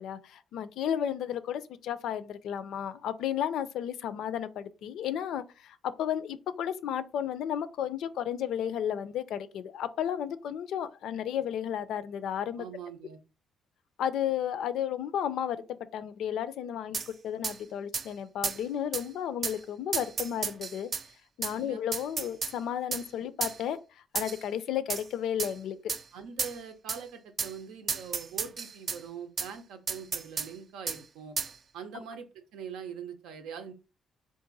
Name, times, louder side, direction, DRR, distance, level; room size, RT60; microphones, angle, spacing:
voice 1, 0.0-12.6 14.0-20.9 21.4-25.9, left 9 dB, 80° left, 0.4 m, -33 dB
voice 2, 12.6-13.2 21.6-21.8 26.1-31.4 31.7-33.7, right 7 dB, 90° right, 0.6 m, -43 dB
sound 1, 16.9-17.1 17.4-17.6 17.9-18.1 18.4-18.6 18.9-19.0 19.4-19.6 19.9-21.0 21.4-21.5 21.9-22.5 22.9-23.0 23.4-23.6 24.1-24.4 24.9-25.0 25.4-25.5 25.9-26.0 26.4-26.6 26.9-27.0 27.4-27.5 27.9-29.0 29.4-29.5 29.9-30.5 30.9-31.0 31.4-31.5, right 5 dB, 45° right, 0.3 m, -32 dB
3.7 x 2.5 x 3.9 m
cardioid pair, 90°, 0 cm